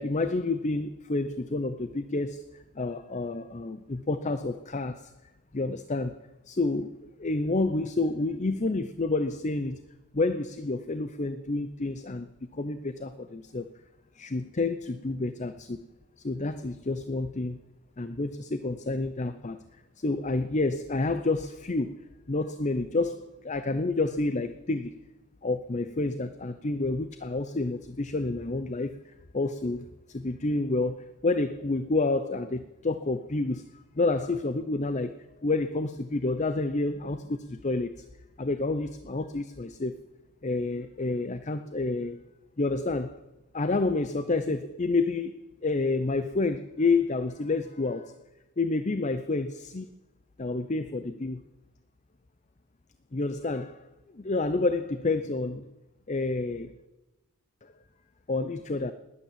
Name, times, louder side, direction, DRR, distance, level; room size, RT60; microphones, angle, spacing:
voice 1, 0.0-5.1 5.5-6.2 6.5-9.8 10.1-12.3 12.5-13.7 14.1-15.9 16.2-17.6 18.0-19.6 20.0-22.0 22.3-25.0 25.4-28.9 29.3-35.1 35.4-38.0 38.4-40.0 40.4-42.2 42.6-43.2 43.5-48.2 48.6-49.9 50.4-51.4 53.1-53.8 54.1-55.7 56.1-56.7 57.6-57.7 58.3-58.9, left 3 dB, 30° left, 11 dB, 0.6 m, -29 dB
20.0 x 9.6 x 7.4 m, 1.0 s
head